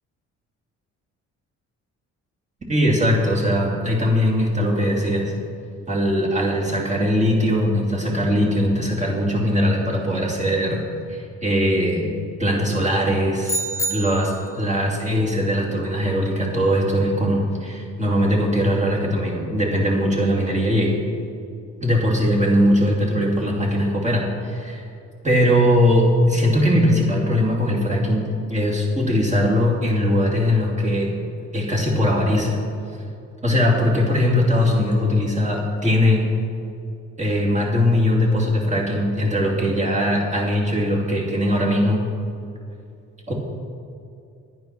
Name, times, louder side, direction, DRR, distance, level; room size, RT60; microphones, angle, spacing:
voice 1, 2.7-5.3 5.9-10.8 11.1-12.1 12.4-13.6 13.9-21.0 21.8-24.8 25.2-31.1 31.5-32.6 33.4-36.2 37.2-42.0 43.3-43.4, equal, 25° right, -4 dB, 2.7 m, -20 dB
sound 1, 13.4-14.6, right 1 dB, 10° left, 1.1 m, -27 dB
9.9 x 9.4 x 6.1 m, 2.5 s
cardioid pair, 90°, 30 cm